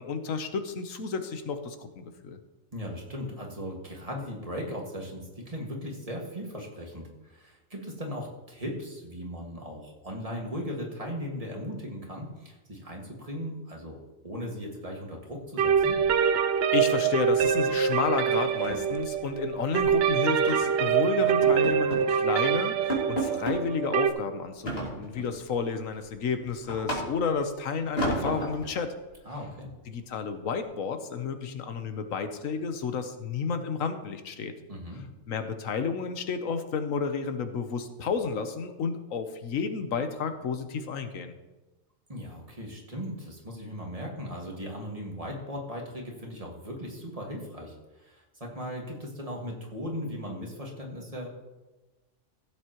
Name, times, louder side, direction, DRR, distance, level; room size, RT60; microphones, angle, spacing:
voice 1, 0.0-2.4 16.7-28.9 29.9-34.5 35.3-41.4, left 5 dB, 85° left, 8 dB, 1.3 m, -31 dB
voice 2, 2.7-16.0 29.2-29.7 34.7-35.0 42.1-51.3, equal, 30° right, -1 dB, 1.9 m, -38 dB
sound 1, 15.6-24.1, right 8 dB, 60° right, 0.7 m, -25 dB
sound 2, 15.7-16.5 16.8-17.1 17.4-17.6 17.9-18.0 18.4-20.0 20.5-20.7 21.2-22.1 22.5-22.6 22.9-23.6 24.7-25.4 25.8-27.4 28.0-28.7, right 1 dB, 50° left, 2.7 m, -34 dB
16.0 x 7.7 x 3.0 m, 1.1 s
omnidirectional pair, 1.4 m